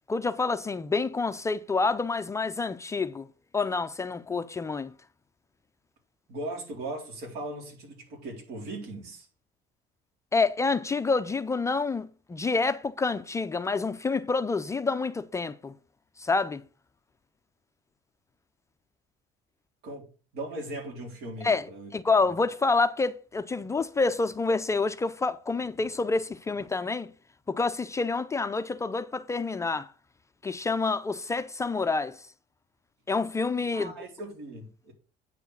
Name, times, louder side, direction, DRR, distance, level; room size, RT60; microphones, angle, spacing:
voice 1, 0.1-3.3 3.5-4.9 10.3-15.7 16.2-16.6 21.4-21.7 21.9-27.1 27.5-29.9 30.4-32.2 33.1-33.9, left 4 dB, 15° left, 0.4 m, -28 dB
voice 2, 6.3-9.3 19.8-20.1 20.3-21.9 22.2-22.3 33.7-34.9, right 2 dB, 75° right, 4.0 m, -38 dB
9.0 x 4.9 x 6.5 m
cardioid pair, 135°, 17 cm